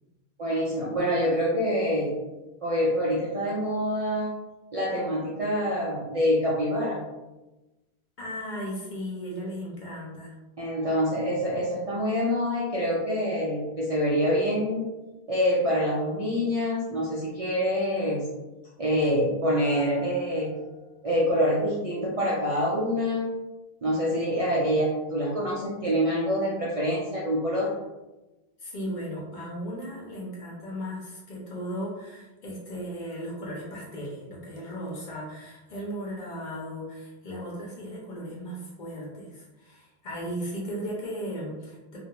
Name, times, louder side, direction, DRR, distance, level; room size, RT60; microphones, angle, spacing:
voice 1, 0.4-2.2 2.6-4.3 4.7-7.0 10.6-14.9 15.3-18.3 18.8-20.5 21.0-23.4 23.8-27.7, equal, 55° right, -5 dB, 0.4 m, -26 dB
voice 2, 8.2-10.4 28.6-42.0, equal, 50° left, -4 dB, 0.7 m, -36 dB
sound 1, 19.6-21.9, left 2 dB, 80° left, 0.9 m, -44 dB
2.3 x 2.0 x 2.9 m, 1.1 s
omnidirectional pair, 1.0 m